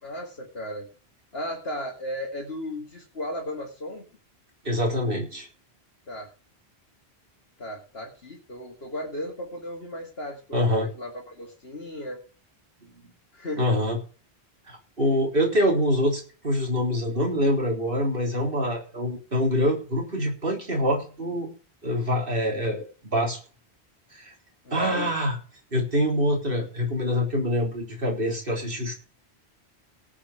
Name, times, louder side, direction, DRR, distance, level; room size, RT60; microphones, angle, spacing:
voice 1, 0.0-0.9 1.3-4.0 6.1-6.3 7.6-12.2 13.3-13.7 24.6-25.1, left 1 dB, 65° left, -3 dB, 2.7 m, -35 dB
voice 2, 4.6-5.5 10.5-10.9 12.8-13.1 13.6-14.0 14.7-21.5 21.8-23.4 24.1-24.3 24.7-25.3 25.7-28.9, equal, 55° right, 0 dB, 3.9 m, -25 dB
18.0 x 7.5 x 4.9 m, 0.39 s
omnidirectional pair, 1.1 m